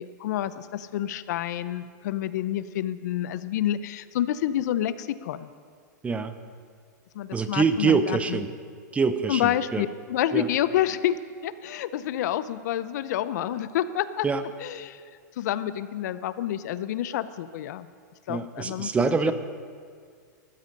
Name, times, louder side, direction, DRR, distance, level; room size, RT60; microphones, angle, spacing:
voice 1, 0.0-5.5 7.1-8.4 9.3-14.3 14.6-15.0 15.4-17.9 18.3-18.9, left 11 dB, 65° left, 15 dB, 0.6 m, -28 dB
voice 2, 7.3-8.5 8.9-9.8 10.3-10.5 14.2-14.4 18.3-19.3, right 5 dB, 15° right, 11 dB, 0.6 m, -25 dB
14.5 x 12.5 x 5.4 m, 2.1 s
hypercardioid pair, 140°, 10 cm